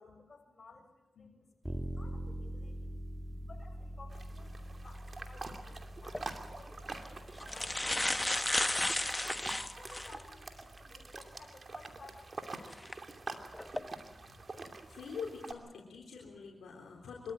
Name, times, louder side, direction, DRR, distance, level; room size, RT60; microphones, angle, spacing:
voice 1, 0.0-1.4 1.6-2.9 3.5-9.2 9.7-12.9, left 3 dB, 50° left, 3 dB, 7.0 m, -57 dB
sound 1, 1.6-11.4, right 1 dB, 5° right, 2.6 m, -45 dB
sound 2, 4.1-15.5, right 3 dB, 50° right, 2.7 m, -46 dB
sound 3, 6.0-6.2 7.0-7.1 7.4-10.2 10.8-10.9 12.7-12.9 13.5-13.8, left 1 dB, 20° left, 1.2 m, -33 dB
voice 2, 14.9-17.3, left 6 dB, 85° left, -2 dB, 3.6 m, -45 dB
25.0 x 14.0 x 9.0 m, 1.1 s
supercardioid pair, 40°, 0 cm